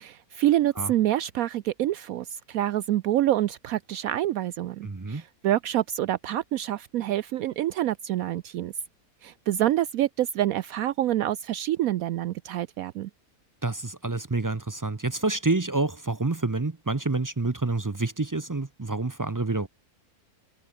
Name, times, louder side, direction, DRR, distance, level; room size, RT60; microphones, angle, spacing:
voice 1, 0.0-8.7 9.2-13.1, right 13 dB, 75° right, 1.0 m, -27 dB
voice 2, 4.8-5.2 13.6-19.7, right 3 dB, 30° right, 0.4 m, -28 dB
omnidirectional pair, 1.6 m